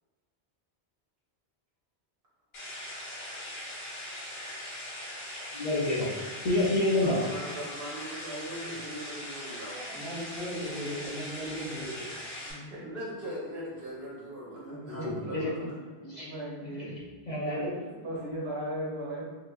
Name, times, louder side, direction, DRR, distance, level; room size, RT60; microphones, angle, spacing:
sound 1, 2.5-12.5, left 1 dB, 75° left, 1.3 m, -40 dB
voice 1, 5.6-6.1 6.4-7.2 14.9-15.5 16.1-16.3 16.6-16.7 17.3-17.7, left 1 dB, 50° left, -7 dB, 0.7 m, -28 dB
voice 2, 7.0-9.7 12.7-15.8, equal, 60° right, -7 dB, 1.3 m, -40 dB
voice 3, 9.7-12.1, equal, 5° left, -8 dB, 0.6 m, -38 dB
voice 4, 12.5-12.9 14.5-15.7 16.0-16.9 17.3-19.3, equal, 80° right, -5 dB, 1.1 m, -38 dB
3.2 x 2.9 x 2.4 m, 1.4 s
omnidirectional pair, 1.1 m